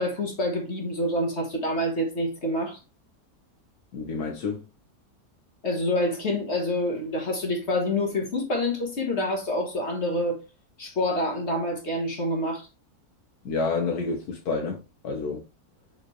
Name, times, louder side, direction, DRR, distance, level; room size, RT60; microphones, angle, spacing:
voice 1, 0.0-2.8 5.6-10.4 10.8-12.7, left 1 dB, 50° left, 1.7 m, -27 dB
voice 2, 3.9-4.6 13.4-14.8 15.0-15.4, left 4 dB, 85° left, 1.5 m, -28 dB
6.1 x 5.0 x 3.1 m
omnidirectional pair, 1.6 m